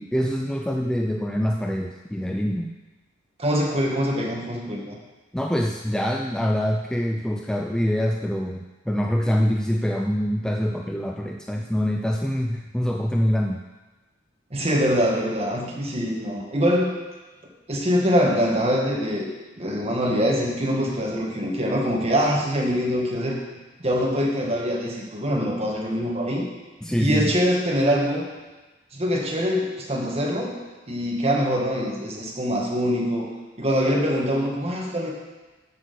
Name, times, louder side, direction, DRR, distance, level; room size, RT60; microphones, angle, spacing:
voice 1, 0.0-2.7 5.3-13.6 26.8-27.3, equal, 5° left, 2 dB, 0.4 m, -25 dB
voice 2, 3.4-5.0 14.5-16.9 17.7-19.3 19.6-23.4 23.8-26.5 27.0-28.2 28.9-30.5 30.9-33.3 33.6-35.1, equal, 30° right, -1 dB, 1.7 m, -24 dB
7.5 x 6.3 x 6.7 m, 1.2 s
head